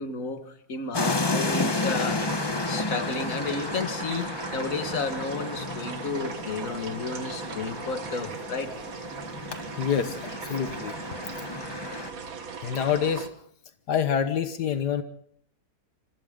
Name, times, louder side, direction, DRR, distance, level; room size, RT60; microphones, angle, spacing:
voice 1, 0.0-2.3 2.7-8.8, left 4 dB, 55° left, 7 dB, 2.2 m, -32 dB
sound 1, 0.9-12.1, left 3 dB, 20° left, 0.8 m, -32 dB
sound 2, 1.4-13.3, right 5 dB, 60° right, 1.9 m, -38 dB
voice 2, 9.8-10.2 10.5-10.9 12.6-13.3 13.9-15.0, left 8 dB, 85° left, 9 dB, 1.8 m, -26 dB
27.0 x 25.5 x 3.8 m, 0.62 s
omnidirectional pair, 1.7 m